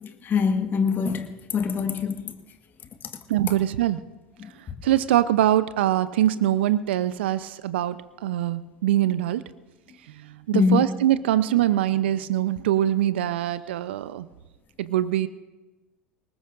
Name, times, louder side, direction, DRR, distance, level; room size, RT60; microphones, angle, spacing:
voice 1, 0.0-2.3 4.4-4.5 10.5-10.8, left 6 dB, 35° left, 1.5 m, -24 dB
voice 2, 3.3-4.0 4.8-9.4 10.2-14.3 14.8-15.3, right 12 dB, 70° right, 0.7 m, -23 dB
28.0 x 19.5 x 2.6 m
figure-of-eight pair, 80°, 6 cm